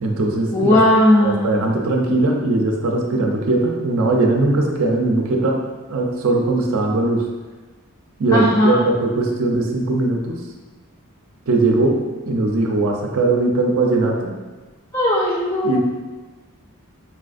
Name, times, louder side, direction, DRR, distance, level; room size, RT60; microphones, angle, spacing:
voice 1, 0.0-0.8 1.2-5.6 5.9-7.3 8.2-10.4 11.5-12.0 12.3-14.3 15.6-15.8, right 2 dB, 70° right, 1 dB, 0.5 m, -19 dB
voice 2, 0.5-1.6 8.3-8.8 14.9-15.8, left 1 dB, 15° left, -7 dB, 0.4 m, -16 dB
4.3 x 2.4 x 2.5 m, 1.3 s
head